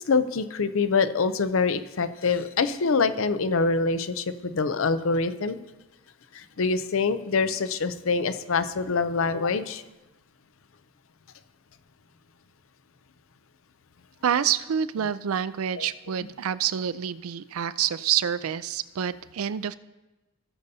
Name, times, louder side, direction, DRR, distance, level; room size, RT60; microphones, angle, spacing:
voice 1, 0.1-5.6 6.3-9.8 15.8-15.9, left 4 dB, 70° left, 12 dB, 0.6 m, -25 dB
voice 2, 14.2-19.7, right 9 dB, 85° right, 14 dB, 0.4 m, -27 dB
18.5 x 6.7 x 2.8 m, 1.1 s
head